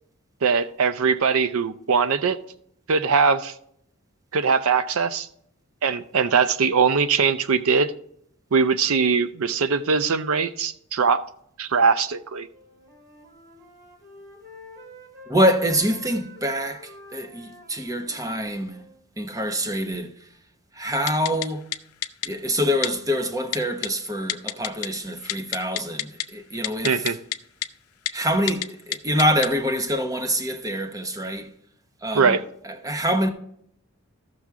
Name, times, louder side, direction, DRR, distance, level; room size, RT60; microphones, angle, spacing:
voice 1, 0.4-2.4 2.9-3.5 4.3-5.3 5.8-7.9 8.5-11.2 11.6-12.5 26.8-27.2 32.1-32.4, right 5 dB, 70° right, 0.5 m, -21 dB
Wind instrument woodwind instrument, 12.5-15.4 15.7-19.0, left 1 dB, 50° right, 3.1 m, -47 dB
voice 2, 15.3-18.8 19.2-20.1 20.7-21.7 22.2-27.2 28.1-31.5 32.0-32.4 32.6-33.3, equal, 15° right, 0.9 m, -25 dB
Typing, 21.1-21.5 21.7-21.8 22.0-22.3 22.8-22.9 23.5-23.9 24.3-24.9 25.2-26.2 26.6-27.4 27.6-27.7 28.1-28.2 28.5-28.7 28.9-29.5 29.9-30.0, left 12 dB, 85° left, 0.5 m, -27 dB
14.5 x 6.2 x 3.6 m
head